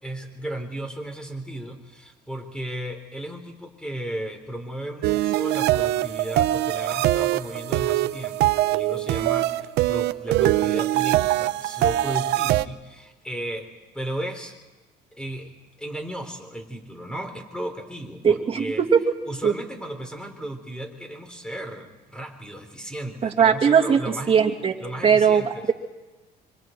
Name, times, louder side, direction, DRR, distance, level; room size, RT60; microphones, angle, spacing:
voice 1, 0.0-13.7 13.9-14.5 15.1-15.5 15.8-18.8 19.3-24.4 24.8-25.7, right 1 dB, 5° left, 5 dB, 4.1 m, -35 dB
sound 1, 5.0-12.6, right 15 dB, 80° right, 0.7 m, -23 dB
voice 2, 18.2-19.0 19.4-19.5 23.2-24.7 25.0-25.7, right 7 dB, 35° right, 3 dB, 2.6 m, -19 dB
26.0 x 25.5 x 4.7 m, 1.1 s
cardioid pair, 110°, 17 cm